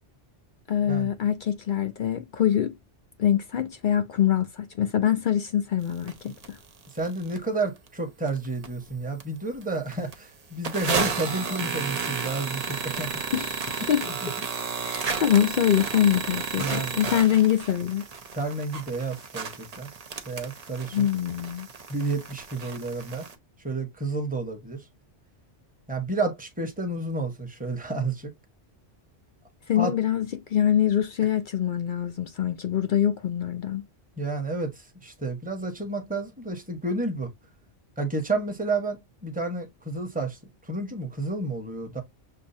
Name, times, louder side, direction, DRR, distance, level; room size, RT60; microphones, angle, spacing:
voice 1, 0.7-2.7 3.2-6.6 13.3-14.1 14.8-18.1 20.9-21.7 29.7-30.3 30.5-33.8, left 10 dB, 60° left, 0.6 m, -24 dB
sound 1, 6.1-6.2 6.4-6.5 7.0-7.4 7.9-8.0 8.3-8.9 9.2-9.3 9.6-9.7 9.9-10.1 10.6-23.3, right 5 dB, 40° right, 0.7 m, -33 dB
voice 2, 6.9-13.1 14.1-14.3 16.6-17.0 18.3-19.9 20.3-21.1 21.9-23.3 23.6-24.9 25.9-28.3 29.7-29.9 34.2-37.3 38.0-42.0, right 2 dB, 10° right, 1.0 m, -31 dB
6.6 x 2.5 x 2.7 m
omnidirectional pair, 1.2 m